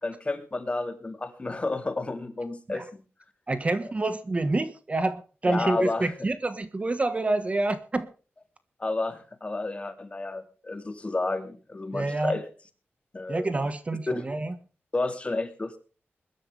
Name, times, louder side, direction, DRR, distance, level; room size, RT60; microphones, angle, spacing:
voice 1, 0.0-3.0 5.5-6.1 8.8-12.4 13.1-13.5 14.1-14.3 14.9-15.8, left 2 dB, 25° left, 2.6 m, -31 dB
voice 2, 3.5-8.1 11.9-12.4 13.3-14.5, right 2 dB, 30° right, 1.4 m, -27 dB
22.0 x 12.0 x 3.4 m
wide cardioid pair, 115°, 4 cm